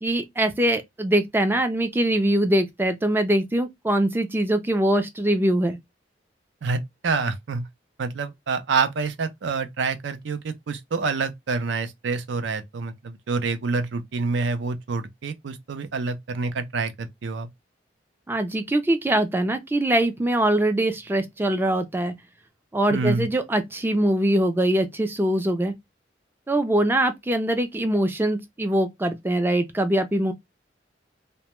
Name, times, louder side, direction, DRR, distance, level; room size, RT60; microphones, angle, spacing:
voice 1, 0.0-5.8 18.3-22.1 22.7-25.7 26.5-30.3, right 1 dB, 10° right, 0.3 m, -23 dB
voice 2, 6.6-7.6 8.0-17.5 22.9-23.3, right 4 dB, 75° right, 0.5 m, -27 dB
2.1 x 2.1 x 2.9 m
head